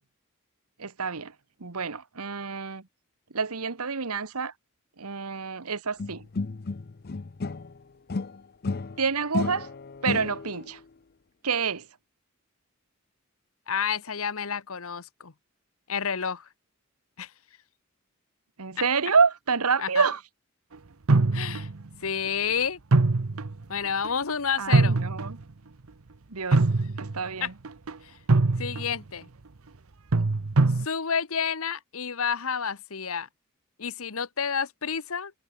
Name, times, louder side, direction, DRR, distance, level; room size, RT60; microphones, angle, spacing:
voice 1, 0.8-1.3 1.6-2.9 3.3-4.5 5.0-6.3 9.0-9.7 10.0-10.8 11.4-11.9 18.6-20.2 24.6-25.4 26.3-26.6 27.0-27.5, right 5 dB, 85° right, 1.4 m, -27 dB
sound 1, 6.0-7.8 8.1-10.7, left 3 dB, 45° left, 0.6 m, -32 dB
voice 2, 13.7-15.3 15.9-16.5 17.2-17.3 19.8-20.0 21.3-21.7 22.0-22.8 23.7-25.0 27.4-27.5 28.0-28.2 28.6-29.3 30.8-33.3 33.8-35.3, left 6 dB, 70° left, 1.2 m, -30 dB
sound 2, 21.1-21.9 22.9-23.6 24.0-24.1 24.7-25.4 26.5-27.3 27.6-27.9 28.3-29.0 30.1-30.9, right 3 dB, 70° right, 0.9 m, -23 dB
head